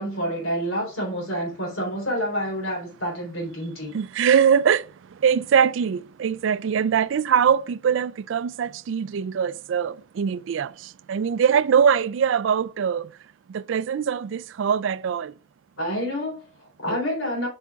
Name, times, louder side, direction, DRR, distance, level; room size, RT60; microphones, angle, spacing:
voice 1, 0.0-3.9 15.8-17.5, equal, 90° left, 3.7 m, -28 dB
voice 2, 3.9-4.8 5.2-10.7 11.1-13.0 13.7-15.3, right 7 dB, 70° right, 0.3 m, -22 dB
8.1 x 5.6 x 2.4 m
head